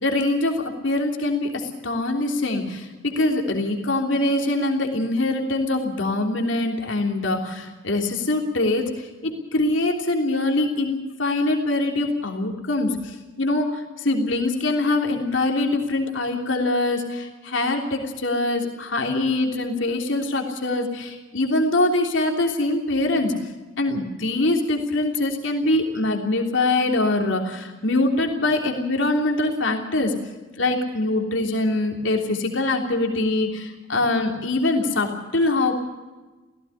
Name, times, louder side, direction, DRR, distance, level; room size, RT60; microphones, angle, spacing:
voice 1, 0.0-23.3 23.8-30.2 30.6-35.7, left 2 dB, 75° left, 3 dB, 3.3 m, -23 dB
17.0 x 16.5 x 9.8 m, 1.2 s
head